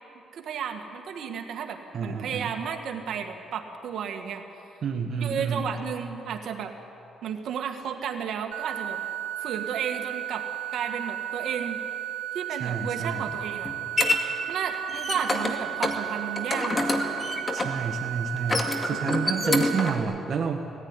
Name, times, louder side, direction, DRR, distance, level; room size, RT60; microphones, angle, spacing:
voice 1, 0.3-4.4 5.2-6.7 7.2-9.0 9.4-11.8 12.3-13.7 14.5-17.2 17.6-17.9 19.3-19.8, right 7 dB, 70° right, 5 dB, 1.9 m, -33 dB
voice 2, 1.9-2.5 4.8-5.7 12.6-13.3 17.5-20.6, right 5 dB, 55° right, 1 dB, 1.5 m, -30 dB
sound 1, 8.5-19.9, right 13 dB, 90° right, 1.7 m, -34 dB
sound 2, 13.1-14.2 14.7-15.5 15.8-16.0 16.4-17.8 18.4-20.0, left 2 dB, 25° left, 2.1 m, -27 dB
18.5 x 15.0 x 9.8 m, 2.8 s
cardioid pair, 90°, 0 cm